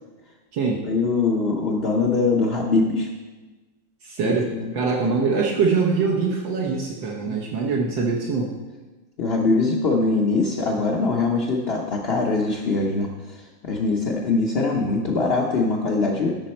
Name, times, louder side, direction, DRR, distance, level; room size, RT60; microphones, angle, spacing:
voice 1, 0.8-3.1 4.2-4.7 5.0-5.1 7.3-7.4 9.2-16.4, left 3 dB, 80° left, 0 dB, 0.5 m, -22 dB
voice 2, 4.0-8.5, right 4 dB, 70° right, -1 dB, 1.6 m, -23 dB
13.0 x 6.2 x 4.3 m, 1.2 s
omnidirectional pair, 2.2 m